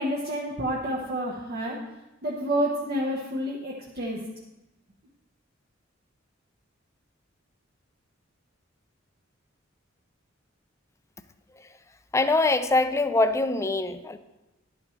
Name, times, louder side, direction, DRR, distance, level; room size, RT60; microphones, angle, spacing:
voice 1, 0.0-1.8 2.2-4.2, equal, 50° right, -4 dB, 1.0 m, -29 dB
voice 2, 12.1-14.2, left 2 dB, 15° left, 11 dB, 0.4 m, -23 dB
11.0 x 8.7 x 3.1 m, 0.99 s
head